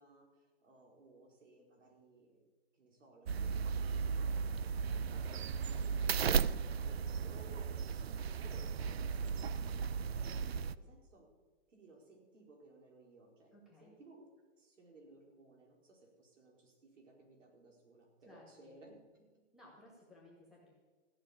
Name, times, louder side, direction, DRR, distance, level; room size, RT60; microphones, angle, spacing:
voice 1, 0.0-2.5 2.7-4.6 4.9-11.3 11.7-14.3 14.6-19.3, right 2 dB, 70° right, 0 dB, 4.8 m, -60 dB
sound 1, 3.3-10.7, right 6 dB, 55° right, 0.5 m, -35 dB
voice 2, 6.4-7.0 13.5-13.9 18.3-18.7 19.5-20.8, left 1 dB, ahead, -5 dB, 1.8 m, -60 dB
15.5 x 6.2 x 9.9 m, 1.4 s
hypercardioid pair, 175°, 38 cm